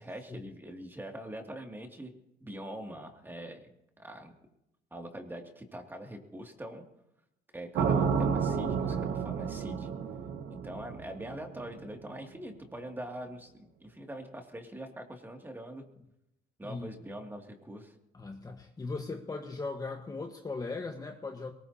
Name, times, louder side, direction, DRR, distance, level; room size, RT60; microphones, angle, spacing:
voice 1, 0.0-2.1 2.4-4.3 4.9-6.8 7.5-9.9 10.5-15.8 16.6-17.9, right 1 dB, 10° right, 2 dB, 2.5 m, -43 dB
sound 1, 7.8-11.8, right 6 dB, 80° right, 1.4 m, -31 dB
voice 2, 18.1-21.5, left 3 dB, 20° left, 3 dB, 1.4 m, -38 dB
22.0 x 19.5 x 2.9 m, 0.85 s
cardioid pair, 110°, 17 cm